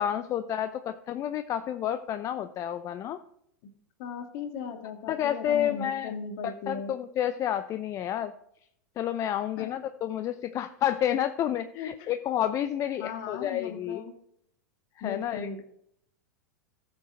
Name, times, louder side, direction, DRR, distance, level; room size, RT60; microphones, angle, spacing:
voice 1, 0.0-3.2 5.1-6.1 6.4-8.3 9.0-14.0 15.0-15.5, left 10 dB, 35° left, 10 dB, 0.6 m, -30 dB
voice 2, 4.0-6.9 9.6-9.7 11.7-12.1 13.0-14.1 15.0-15.6, left 5 dB, 50° left, 6 dB, 1.8 m, -37 dB
14.5 x 6.3 x 4.4 m, 0.71 s
figure-of-eight pair, 95°, 10 cm